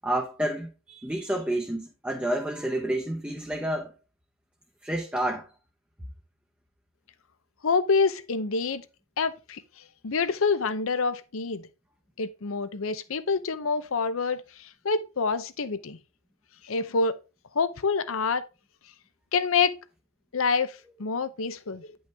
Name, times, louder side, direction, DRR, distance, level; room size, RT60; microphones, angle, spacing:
voice 1, 0.0-3.9 4.8-5.5, right 1 dB, 5° right, 0.8 m, -29 dB
voice 2, 7.6-8.8 9.2-9.6 10.0-11.7 12.2-16.0 16.6-17.1 17.5-18.5 19.3-19.8 20.3-22.0, left 4 dB, 75° left, 0.7 m, -27 dB
9.1 x 5.5 x 3.4 m
head